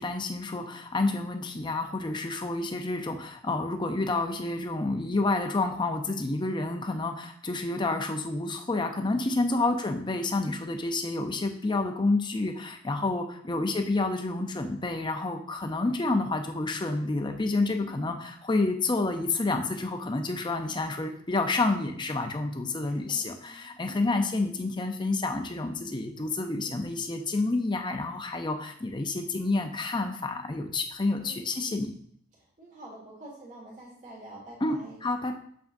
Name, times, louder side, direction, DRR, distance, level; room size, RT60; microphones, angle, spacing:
voice 1, 0.0-31.9 34.6-35.4, left 2 dB, 20° left, 5 dB, 0.5 m, -29 dB
voice 2, 17.8-18.1 22.8-24.2 26.5-26.8 31.2-31.8 32.3-35.0, right 1 dB, 35° right, -3 dB, 1.7 m, -48 dB
7.1 x 5.9 x 2.6 m, 0.65 s
head